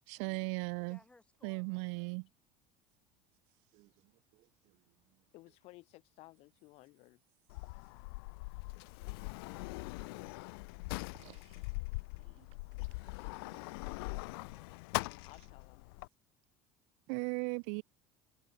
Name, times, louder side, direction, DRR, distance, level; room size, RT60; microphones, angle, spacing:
voice 1, 0.1-1.0 1.4-2.3 17.1-17.8, right 40 dB or more, 75° right, 1.0 m, -37 dB
voice 2, 0.8-2.1 9.4-9.8, left 2 dB, 10° left, 6.5 m, -67 dB
voice 3, 3.7-5.3 11.1-11.7 12.1-12.5 13.4-13.6, right 20 dB, 55° right, 2.2 m, -63 dB
voice 4, 5.3-7.2 15.2-15.8, left 20 dB, 55° left, 7.7 m, -57 dB
Sliding door, 7.5-16.1, left 27 dB, 90° left, 0.4 m, -42 dB
cardioid pair, 150°, 12 cm